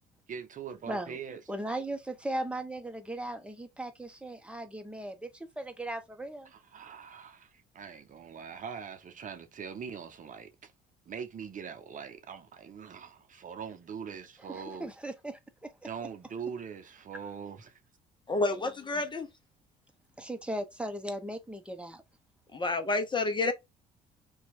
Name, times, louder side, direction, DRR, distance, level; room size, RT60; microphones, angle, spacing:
voice 1, 0.3-1.4 6.4-10.7 11.1-14.9 15.8-17.8, right 7 dB, 45° right, 0.7 m, -42 dB
voice 2, 0.9-1.2 1.5-6.5 14.5-15.9 20.2-22.0, right 1 dB, 5° right, 0.9 m, -38 dB
voice 3, 18.3-19.3 22.5-23.5, left 3 dB, 25° left, 0.8 m, -29 dB
2.9 x 2.3 x 4.1 m
hypercardioid pair, 65°, 19 cm